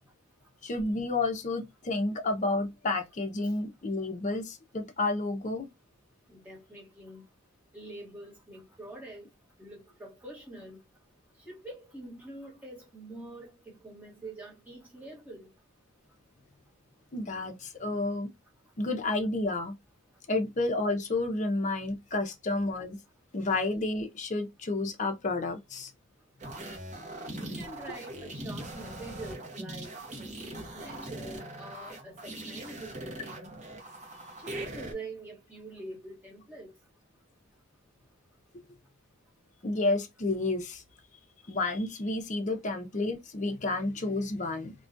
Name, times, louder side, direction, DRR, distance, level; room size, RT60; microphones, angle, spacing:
voice 1, 0.6-5.7 17.1-18.3 18.8-19.7 20.3-23.0 23.3-25.9 39.6-40.8 41.5-44.7, left 2 dB, 35° left, 0.5 m, -30 dB
voice 2, 6.3-7.2 7.7-9.3 9.6-10.8 11.4-15.5 27.4-33.5 34.4-36.7, right 2 dB, 10° right, 1.2 m, -45 dB
sound 1, 26.4-34.9, right 1 dB, 35° right, 0.7 m, -41 dB
2.3 x 2.2 x 2.5 m
head